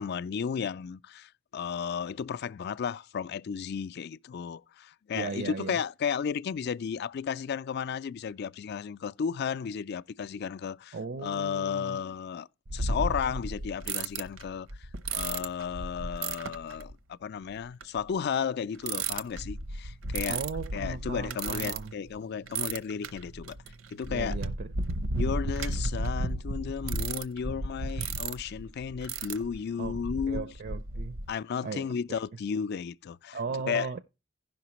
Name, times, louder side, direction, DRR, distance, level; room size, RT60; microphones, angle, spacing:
voice 1, 0.0-11.0 11.2-20.5 20.7-23.6 23.9-24.4 25.2-30.5 31.3-33.4 33.7-33.9, left 7 dB, 55° left, 0.4 m, -34 dB
voice 2, 5.1-5.8 10.9-12.0 20.3-21.9 24.1-24.7 29.8-30.0 30.3-31.2 31.6-32.2 33.3-34.0, right 4 dB, 50° right, 0.5 m, -37 dB
sound 1, 12.7-16.9 17.8-18.0 18.8-22.2 22.5-31.3, right 2 dB, 80° right, 0.8 m, -34 dB
16.0 x 5.8 x 2.9 m
head